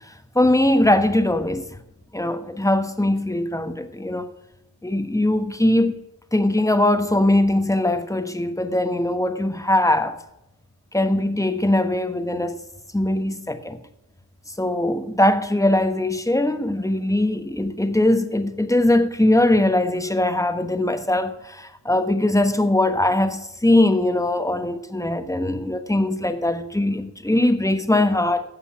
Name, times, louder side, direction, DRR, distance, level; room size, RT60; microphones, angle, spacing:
voice 1, 0.0-1.8 2.1-4.3 4.8-6.0 6.3-10.2 10.9-12.6 12.9-13.8 14.6-28.4, left 1 dB, 10° left, 1.2 m, -21 dB
16.0 x 5.5 x 5.8 m
wide cardioid pair, 90°, 41 cm